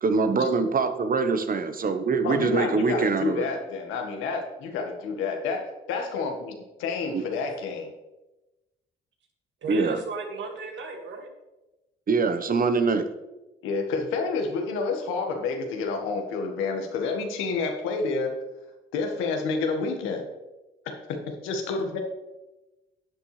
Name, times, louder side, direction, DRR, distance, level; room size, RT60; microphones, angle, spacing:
voice 1, 0.0-3.5 7.1-7.2 9.7-10.0 12.1-13.1, right 4 dB, 45° right, 9 dB, 1.1 m, -24 dB
voice 2, 2.2-7.9 13.6-18.3 18.9-20.2 21.0-22.0, left 4 dB, 85° left, 4 dB, 1.6 m, -29 dB
voice 3, 9.6-11.3, right 4 dB, 65° right, 2 dB, 2.2 m, -35 dB
11.5 x 8.3 x 3.3 m, 1.0 s
supercardioid pair, 55°, 20 cm